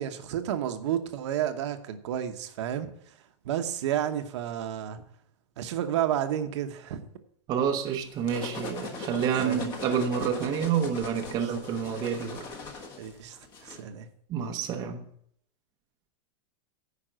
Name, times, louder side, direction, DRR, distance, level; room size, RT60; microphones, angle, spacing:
voice 1, 0.0-2.9 3.4-5.0 5.6-7.1 9.4-9.7 11.3-11.4 13.0-13.4 13.6-14.1, right 10 dB, 65° right, 1.1 m, -31 dB
voice 2, 7.5-12.5 14.3-15.0, right 7 dB, 25° right, 0.8 m, -28 dB
sound 1, 7.9-13.8, left 4 dB, 30° left, 1.4 m, -40 dB
10.0 x 5.2 x 7.6 m
supercardioid pair, 170°, 16 cm